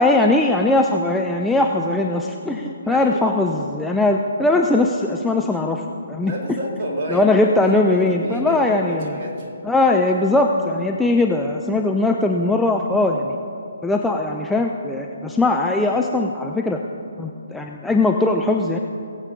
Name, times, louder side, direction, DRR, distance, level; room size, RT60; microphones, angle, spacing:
voice 1, 0.0-5.8 6.1-6.3 7.1-9.1 9.6-13.4 13.8-16.8 17.2-18.8, left 2 dB, 5° left, 1 dB, 0.4 m, -20 dB
voice 2, 2.8-3.2 6.2-9.5, equal, 35° right, -2 dB, 2.2 m, -30 dB
20.0 x 8.1 x 3.7 m, 2.6 s
figure-of-eight pair, 135°, 0 cm